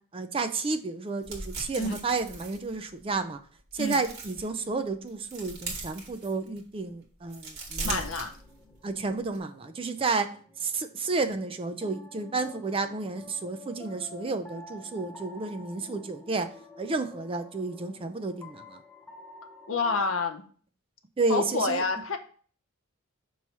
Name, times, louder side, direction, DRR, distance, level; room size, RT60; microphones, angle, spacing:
voice 1, 0.1-3.4 3.7-8.3 8.8-18.8 21.2-21.8, right 3 dB, 25° right, 8 dB, 0.4 m, -31 dB
sound 1, 1.2-3.2 3.6-4.5 4.9-6.7 7.1-8.9 9.2-9.4, right 3 dB, 50° right, 1.6 m, -39 dB
voice 2, 7.8-8.3 19.7-20.5 21.3-22.2, left 3 dB, 65° left, 7 dB, 0.8 m, -28 dB
sound 2, 8.2-20.1, left 2 dB, 10° left, 0.7 m, -50 dB
5.9 x 3.1 x 5.4 m, 0.43 s
head